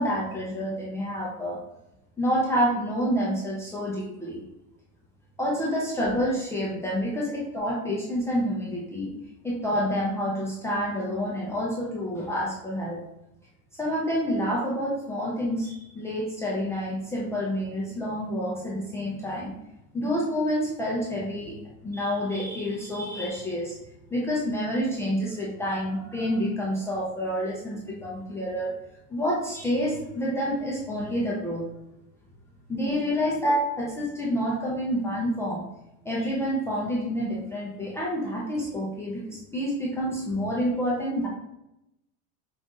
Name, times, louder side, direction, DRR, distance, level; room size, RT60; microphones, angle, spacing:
voice 1, 0.0-1.6 2.2-4.4 5.4-9.1 9.4-13.0 13.8-19.5 19.9-21.5 21.8-23.8 24.1-28.7 29.1-31.7 32.7-35.6 36.0-41.3, equal, 5° left, -6 dB, 0.4 m, -28 dB
5.5 x 2.4 x 3.6 m, 0.87 s
supercardioid pair, 150°, 42 cm